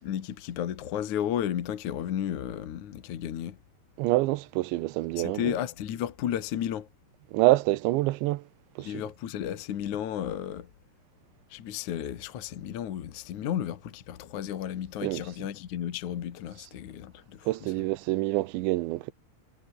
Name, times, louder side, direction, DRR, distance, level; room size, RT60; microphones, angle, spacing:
voice 1, 0.0-3.6 5.2-6.9 8.8-10.7 11.5-17.7, left 10 dB, 55° left, 2.5 m, -33 dB
voice 2, 4.0-5.5 7.3-8.4 8.8-9.0 15.0-15.2 17.5-19.1, right 18 dB, 90° right, 3.2 m, -26 dB
omnidirectional pair, 5.1 m